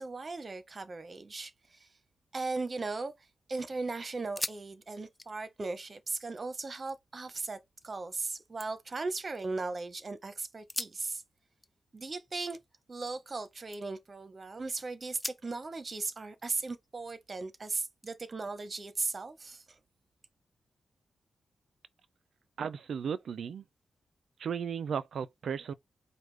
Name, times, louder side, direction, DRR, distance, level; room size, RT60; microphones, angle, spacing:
voice 1, 0.0-1.9 2.3-3.1 3.5-7.6 7.8-11.2 11.9-12.6 12.9-19.8, right 3 dB, 30° right, 0.7 m, -37 dB
sound 1, 2.6-3.4 3.7-3.8 4.2-4.6 4.9-7.0 7.4-7.9 8.3-9.8 10.5-13.4 13.7-14.1 14.5-14.7 15.1-17.4 18.0-19.2, left 1 dB, 10° left, 0.3 m, -45 dB
voice 2, 22.6-23.6 24.4-25.7, right 7 dB, 70° right, 0.4 m, -35 dB
4.9 x 2.1 x 3.2 m
wide cardioid pair, 130°, 0 cm